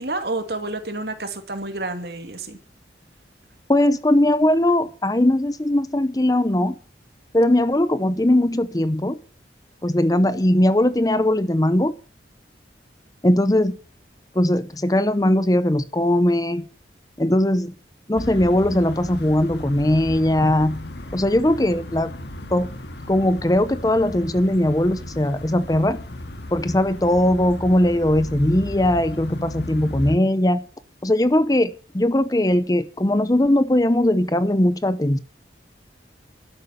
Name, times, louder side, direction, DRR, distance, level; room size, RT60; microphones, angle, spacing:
voice 1, 0.0-2.6, right 2 dB, 60° right, 2.4 m, -29 dB
voice 2, 3.7-6.8 7.3-9.2 9.8-11.9 13.2-13.8 14.3-16.7 17.2-17.7 18.1-20.8 21.1-22.1 22.5-22.8 23.1-26.0 26.5-30.6 31.0-35.2, left 1 dB, 20° left, 0.7 m, -19 dB
sound 1, 18.2-30.2, left 1 dB, 65° left, 2.0 m, -35 dB
12.5 x 11.0 x 7.2 m
head